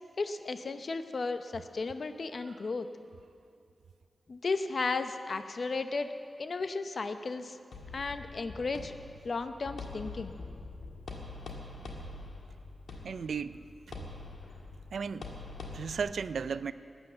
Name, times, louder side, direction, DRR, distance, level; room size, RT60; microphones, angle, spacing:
voice 1, 0.2-2.9 4.3-6.1 6.4-7.6 7.9-8.9 9.2-10.3, left 3 dB, 65° left, 9 dB, 0.8 m, -34 dB
sound 1, 7.7-16.0, left 3 dB, 85° left, 1.6 m, -44 dB
voice 2, 13.0-13.7 14.9-15.3 15.7-16.7, right 6 dB, 85° right, 14 dB, 0.3 m, -35 dB
13.0 x 9.8 x 7.8 m, 2.5 s
cardioid pair, 45°, 0 cm